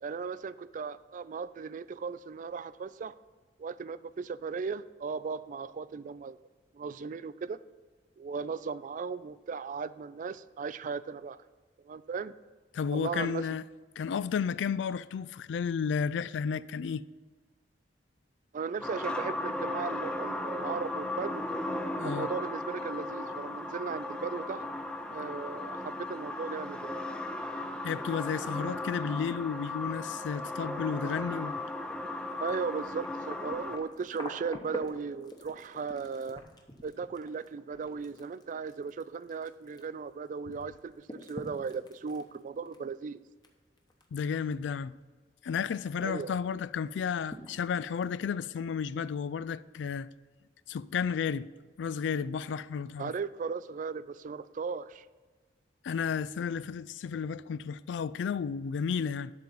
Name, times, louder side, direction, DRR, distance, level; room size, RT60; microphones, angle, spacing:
voice 1, 0.0-3.1 3.6-6.4 6.7-7.6 8.2-11.4 11.8-12.3 12.9-13.5 18.5-21.5 22.0-24.7 25.1-27.0 31.0-31.1 32.4-36.4 36.8-43.2 46.0-46.4 53.0-55.1, right 5 dB, 45° right, 0.3 m, -37 dB
voice 2, 12.7-13.6 14.0-17.0 22.0-22.3 27.8-31.6 44.1-44.9 45.4-50.1 50.7-51.5 51.8-53.1 55.8-59.3, left 6 dB, 80° left, 0.3 m, -32 dB
sound 1, 18.8-33.8, left 1 dB, 5° left, 0.5 m, -36 dB
sound 2, 32.3-40.3 40.5-43.5 43.8-44.3 44.6-44.7 46.0-46.1 46.5-46.6 47.0-48.2 49.0-49.1, left 1 dB, 25° left, 1.0 m, -47 dB
12.0 x 3.9 x 7.2 m
head